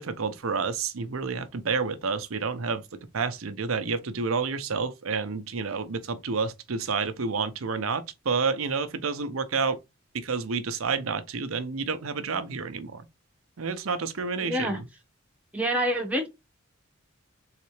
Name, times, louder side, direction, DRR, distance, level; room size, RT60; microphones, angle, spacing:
voice 1, 0.0-2.8 3.1-9.8 10.1-13.1 13.6-14.9, right 5 dB, 90° right, 0.7 m, -29 dB
voice 2, 14.4-14.8 15.5-16.3, equal, 5° right, 1.2 m, -27 dB
4.0 x 3.2 x 3.2 m
head